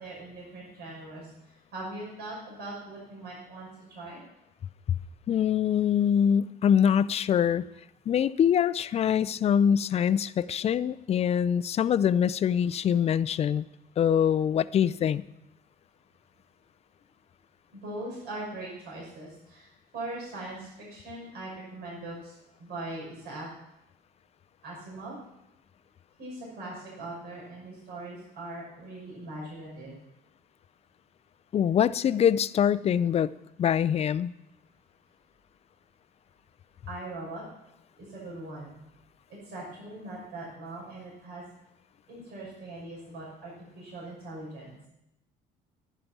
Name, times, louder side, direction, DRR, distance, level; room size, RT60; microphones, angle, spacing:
voice 1, 0.0-4.2 17.7-23.5 24.6-25.1 26.2-30.0 36.9-37.4 38.0-38.8 39.3-41.4 42.1-44.7, right 2 dB, 75° right, -4 dB, 6.0 m, -41 dB
voice 2, 5.3-7.6 8.1-13.7 14.0-15.2 31.5-33.3 33.6-34.3, left 8 dB, 40° left, 17 dB, 0.4 m, -24 dB
11.0 x 10.0 x 6.0 m, 0.85 s
cardioid pair, 110°, 17 cm